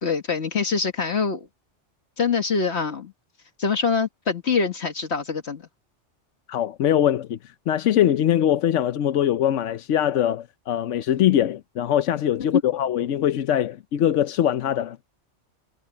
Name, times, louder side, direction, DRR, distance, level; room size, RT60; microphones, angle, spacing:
voice 1, 0.0-1.5 2.2-3.1 3.6-5.6 12.5-12.6, left 5 dB, 65° left, 1.8 m, -24 dB
voice 2, 6.5-15.0, left 10 dB, 85° left, 1.0 m, -22 dB
omnidirectional pair, 1.2 m